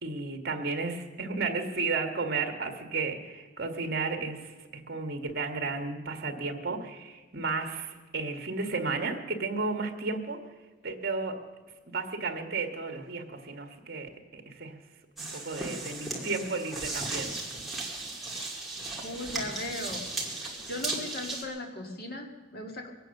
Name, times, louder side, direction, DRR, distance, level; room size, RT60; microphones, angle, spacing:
voice 1, 0.0-10.4 10.8-11.4 11.8-14.8 15.2-17.4, right 4 dB, 50° right, 6 dB, 1.7 m, -33 dB
sound 1, 15.2-21.4, right 2 dB, ahead, 2.2 m, -36 dB
voice 2, 19.0-20.4 20.7-22.9, left 1 dB, 50° left, 3 dB, 2.0 m, -38 dB
22.5 x 9.0 x 6.6 m, 1.2 s
head